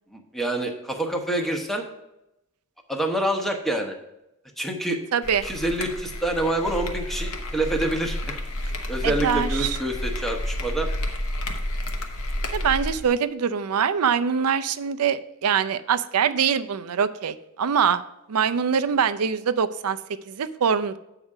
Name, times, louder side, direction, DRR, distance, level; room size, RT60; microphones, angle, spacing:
voice 1, 0.1-1.8 2.9-4.0 4.6-5.0 5.4-8.4 8.9-10.9, right 1 dB, ahead, 2 dB, 1.0 m, -27 dB
voice 2, 5.1-5.5 9.0-9.7 12.5-18.0 18.3-20.0 20.3-21.0, right 7 dB, 90° right, 12 dB, 0.5 m, -23 dB
sound 1, 5.2-13.1, left 1 dB, 70° left, 1.0 m, -30 dB
8.0 x 4.9 x 5.4 m, 0.88 s
head